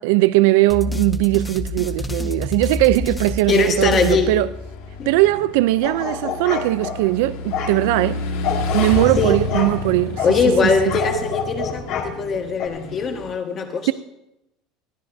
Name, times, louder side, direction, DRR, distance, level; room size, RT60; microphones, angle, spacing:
voice 1, 0.0-4.5 5.1-8.2 8.7-10.2 10.6-11.0, right 18 dB, 70° right, 0.4 m, -19 dB
sound 1, 0.7-5.0, left 3 dB, 5° left, 0.5 m, -28 dB
Motorcycle / Engine, 3.5-13.3, left 2 dB, 90° left, 3.0 m, -30 dB
voice 2, 3.5-4.3 5.0-5.1 9.2-9.4 10.2-13.9, left 4 dB, 25° left, 1.4 m, -21 dB
sound 2, 5.8-7.0 7.5-7.7 8.4-9.7 10.2-10.4 10.9-12.1 12.6-12.7, left 7 dB, 50° left, 2.0 m, -27 dB
21.0 x 15.0 x 2.7 m
cardioid pair, 175°, 0 cm